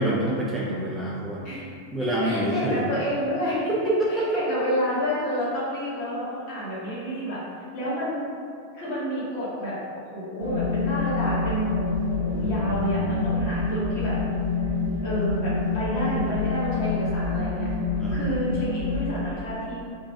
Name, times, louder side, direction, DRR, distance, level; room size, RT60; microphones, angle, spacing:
voice 1, 0.0-1.4 1.9-2.9 3.8-4.3 4.5-4.6 12.3-13.1 18.0-18.3, right 1 dB, 10° right, -6 dB, 0.5 m, -27 dB
voice 2, 2.1-7.4 7.7-8.2 8.7-9.8 10.1-11.7 12.2-14.1 15.0-17.7 18.1-19.8, equal, 45° left, -8 dB, 1.4 m, -29 dB
sound 1, 10.4-19.2, left 3 dB, 75° left, 0.6 m, -27 dB
3.0 x 2.6 x 3.3 m, 2.4 s
figure-of-eight pair, 90°, 0 cm